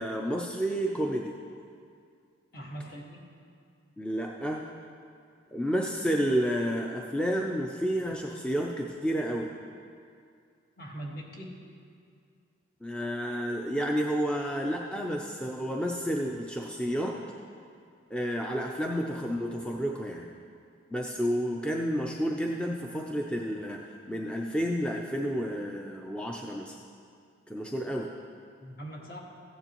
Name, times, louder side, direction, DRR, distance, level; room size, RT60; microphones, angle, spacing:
voice 1, 0.0-1.4 4.0-4.6 5.5-9.5 12.8-17.2 18.1-20.3 20.9-23.8 24.1-26.7 27.5-28.1, equal, 5° left, 0 dB, 0.4 m, -30 dB
voice 2, 2.5-3.2 10.8-11.5 28.6-29.2, right 1 dB, 50° left, -2 dB, 1.5 m, -41 dB
15.0 x 9.4 x 3.0 m, 2.3 s
head